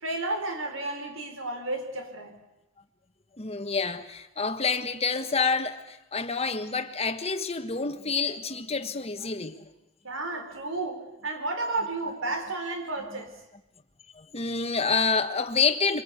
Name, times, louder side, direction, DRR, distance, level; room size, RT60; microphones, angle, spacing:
voice 1, 0.0-2.3 10.0-13.4, right 2 dB, 75° right, 4.6 m, -32 dB
voice 2, 3.4-9.6 13.1-13.2 14.1-16.0, left 4 dB, 30° left, 1.6 m, -28 dB
24.5 x 24.5 x 8.4 m
head